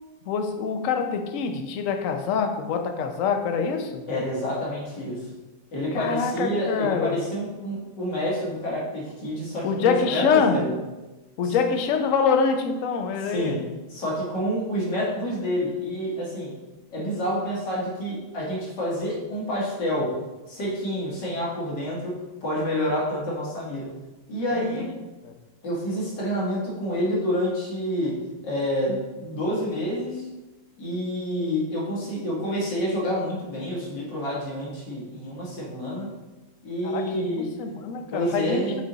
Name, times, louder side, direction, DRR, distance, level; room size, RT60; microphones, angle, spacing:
voice 1, 0.3-4.1 5.9-7.2 9.6-10.7 11.4-13.7 24.5-24.8 25.2-25.4 36.8-38.8, left 5 dB, 65° left, 6 dB, 0.8 m, -25 dB
voice 2, 4.1-5.3 5.7-10.7 11.4-11.6 13.3-16.6 16.9-20.2 20.5-23.9 24.3-25.0 25.6-30.3 30.8-36.1 36.6-37.6 38.1-38.8, equal, 80° left, -5 dB, 2.3 m, -28 dB
6.1 x 4.3 x 3.8 m, 1.1 s
omnidirectional pair, 1.9 m